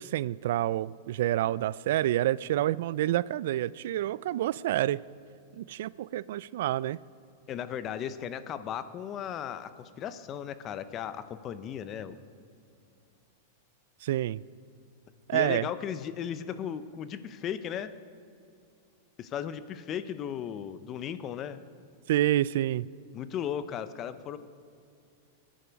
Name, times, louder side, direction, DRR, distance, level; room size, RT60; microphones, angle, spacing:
voice 1, 0.0-5.0 5.6-7.0 14.0-14.4 15.3-15.7 22.1-22.8, right 13 dB, 65° right, 21 dB, 0.3 m, -28 dB
voice 2, 7.5-12.2 15.3-17.9 19.2-21.6 23.1-24.4, left 9 dB, 25° left, 13 dB, 0.6 m, -36 dB
22.0 x 10.0 x 5.2 m, 2.5 s
supercardioid pair, 155°, 0 cm